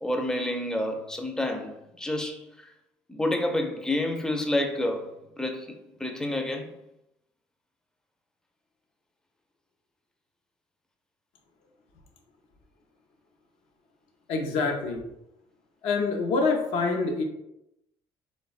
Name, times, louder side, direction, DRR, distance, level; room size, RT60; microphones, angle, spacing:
voice 1, 0.0-2.4 3.1-5.1 5.4-5.7 6.0-6.7, left 1 dB, 5° left, 0.4 m, -28 dB
voice 2, 14.3-15.0 15.8-17.2, left 4 dB, 80° left, 0.5 m, -26 dB
3.3 x 2.1 x 2.4 m
supercardioid pair, 80°, 10 cm